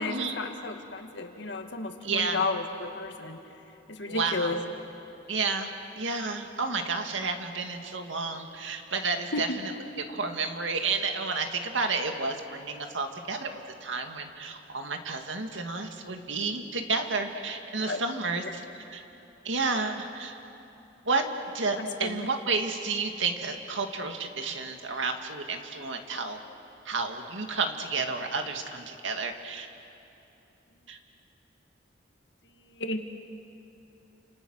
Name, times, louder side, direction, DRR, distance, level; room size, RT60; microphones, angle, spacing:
voice 1, 0.0-3.4 3.9-4.6 9.3-9.6 17.9-18.0 18.4-18.5 19.8-19.9 21.8-22.3 32.6-33.0, left 3 dB, 70° left, 5 dB, 2.0 m, -33 dB
voice 2, 2.0-2.5 4.1-4.6 5.3-9.7 10.0-18.6 18.9-19.0 19.4-20.4 21.1-21.3 21.5-26.4 26.9-29.7 30.9-31.0, right 4 dB, 90° right, 5 dB, 2.1 m, -31 dB
30.0 x 28.0 x 6.5 m, 2.8 s
head